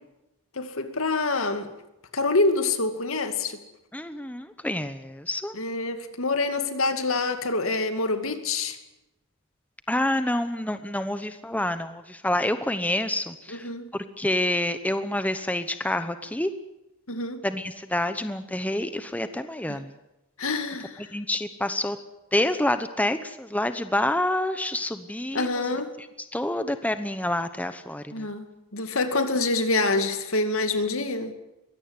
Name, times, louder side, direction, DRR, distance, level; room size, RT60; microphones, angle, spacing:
voice 1, 0.6-1.7 2.1-3.6 5.5-8.8 13.5-13.9 17.1-17.4 19.7-19.8 20.4-21.0 25.3-25.9 28.1-28.4 28.7-31.3, left 3 dB, 70° left, 2.3 m, -26 dB
voice 2, 3.9-5.5 9.9-16.5 17.4-19.9 21.1-22.0 22.3-25.7 26.3-28.3, left 1 dB, 5° left, 0.9 m, -28 dB
22.5 x 17.0 x 9.7 m
head